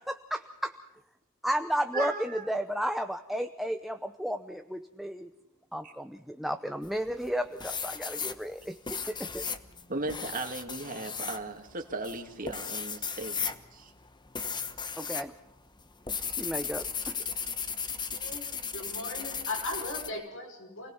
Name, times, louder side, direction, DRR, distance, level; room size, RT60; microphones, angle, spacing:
voice 1, 0.1-0.7 1.4-5.3 5.7-9.5 15.0-15.3 16.3-17.3, equal, ahead, 7 dB, 0.7 m, -33 dB
voice 2, 1.9-2.5 5.8-5.9 9.9-13.9, right 3 dB, 40° right, 4 dB, 2.4 m, -37 dB
sound 1, 6.8-7.3 7.6-15.3 15.6-20.1, left 6 dB, 20° left, 1.1 m, -36 dB
voice 3, 18.1-18.5 18.7-20.9, left 2 dB, 60° left, 4 dB, 5.4 m, -38 dB
28.5 x 18.5 x 5.7 m, 0.93 s
head